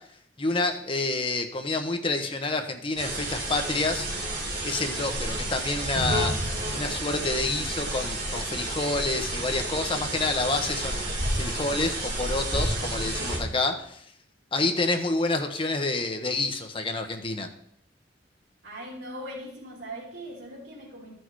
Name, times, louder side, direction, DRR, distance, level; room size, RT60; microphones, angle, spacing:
voice 1, 0.4-4.1 4.6-6.3 6.7-11.0 11.3-14.0 14.5-17.5, left 2 dB, 30° left, 5 dB, 1.1 m, -28 dB
sound 1, 3.0-13.4, right 1 dB, 50° right, 4.3 m, -30 dB
voice 2, 18.6-21.2, right 1 dB, 80° right, -7 dB, 3.1 m, -40 dB
13.5 x 6.4 x 4.7 m, 0.69 s
head